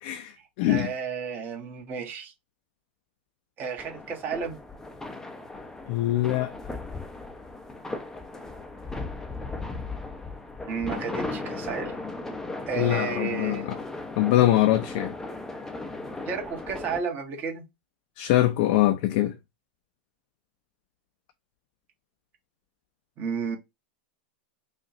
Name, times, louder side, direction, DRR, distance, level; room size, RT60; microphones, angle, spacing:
voice 1, 0.0-0.9 5.9-6.5 12.8-13.8 14.2-15.1 18.2-19.3, left 14 dB, 55° left, 0.6 m, -23 dB
voice 2, 0.7-2.3 3.6-4.6 10.7-12.0 12.7-13.7 16.3-17.6 23.2-23.6, right 5 dB, 35° right, 1.5 m, -32 dB
sound 1, 3.8-17.0, left 2 dB, 10° left, 0.6 m, -37 dB
5.0 x 2.5 x 3.0 m
hypercardioid pair, 115°, 6 cm